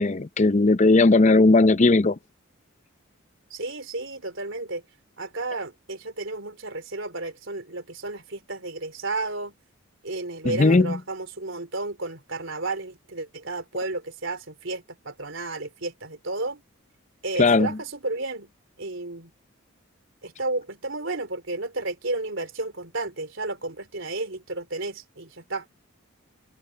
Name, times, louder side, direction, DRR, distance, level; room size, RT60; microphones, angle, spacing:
voice 1, 0.0-2.2 10.4-11.0 17.4-17.8, left 3 dB, 35° left, 0.5 m, -18 dB
voice 2, 3.5-4.8 5.2-9.5 10.0-16.6 17.2-18.5 18.8-19.3 20.2-25.7, right 2 dB, 60° right, 3.9 m, -32 dB
head